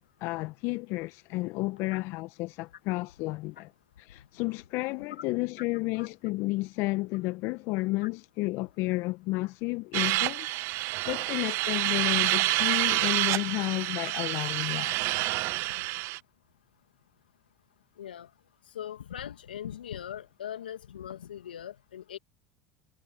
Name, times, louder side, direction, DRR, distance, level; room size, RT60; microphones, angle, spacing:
voice 1, 0.0-3.7 4.0-15.0 15.9-16.0, left 22 dB, 60° left, 1.4 m, -32 dB
sound 1, 9.9-16.2, right 21 dB, 55° right, 0.7 m, -28 dB
voice 2, 18.0-18.3 18.7-22.2, left 10 dB, 85° left, 2.5 m, -41 dB
hypercardioid pair, 75°, 5 cm